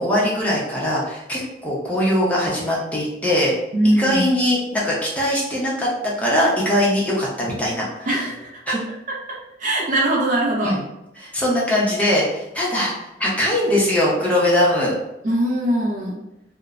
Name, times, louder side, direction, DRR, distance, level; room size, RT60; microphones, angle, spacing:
voice 1, 0.0-3.5 3.8-5.9 6.2-8.1 8.7-8.8 10.6-10.8 11.2-12.9 13.2-14.9, left 1 dB, 10° left, -5 dB, 0.6 m, -21 dB
voice 2, 3.7-4.3 8.1-8.8 9.1-10.8 15.2-16.2, right 1 dB, 40° right, -1 dB, 0.4 m, -22 dB
3.0 x 2.1 x 2.4 m, 0.86 s
head